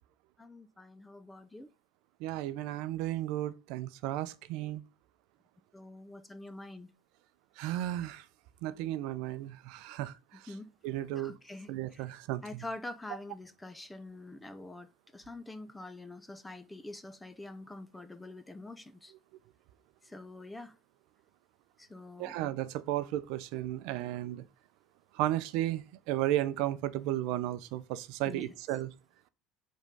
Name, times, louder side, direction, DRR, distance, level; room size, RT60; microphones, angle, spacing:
voice 1, 0.4-1.7 5.7-6.9 10.5-10.7 11.1-12.0 12.4-19.1 20.0-20.8 21.8-22.4 28.3-28.5, left 2 dB, 5° left, 0.4 m, -46 dB
voice 2, 2.2-4.8 7.6-8.2 8.6-10.4 10.8-11.3 11.7-12.6 22.2-24.4 25.1-28.9, right 14 dB, 65° right, 0.5 m, -34 dB
5.2 x 3.7 x 5.2 m
cardioid pair, 170°, 0 cm